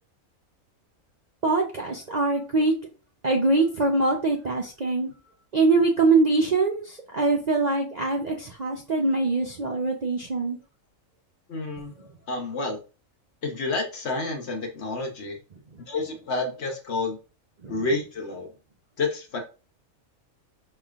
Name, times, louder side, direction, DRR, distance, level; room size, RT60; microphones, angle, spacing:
voice 1, 1.4-2.7 3.2-5.1 5.5-10.6 12.0-12.1 17.6-17.9, right 3 dB, 45° right, 0 dB, 0.6 m, -23 dB
voice 2, 11.5-11.9 12.3-12.8 13.4-15.4 15.9-17.2 17.7-18.5 19.0-19.4, left 3 dB, 55° left, 2 dB, 1.1 m, -29 dB
5.4 x 3.3 x 2.4 m, 0.33 s
omnidirectional pair, 1.5 m